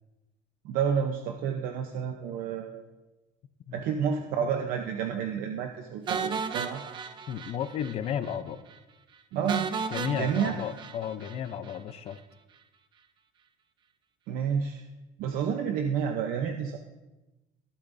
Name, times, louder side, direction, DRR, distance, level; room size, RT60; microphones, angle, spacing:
voice 1, 0.6-2.8 3.7-6.8 9.3-9.7 10.1-10.6 14.3-14.8 15.2-16.8, right 7 dB, 65° right, 4 dB, 0.8 m, -30 dB
sound 1, 6.1-8.0 8.2-8.4 8.7-8.8 9.5-11.8, right 6 dB, 30° right, 0.6 m, -34 dB
voice 2, 7.3-8.6 9.9-12.2, left 9 dB, 40° left, 11 dB, 0.6 m, -33 dB
23.0 x 8.7 x 2.7 m, 1.1 s
cardioid pair, 160°, 16 cm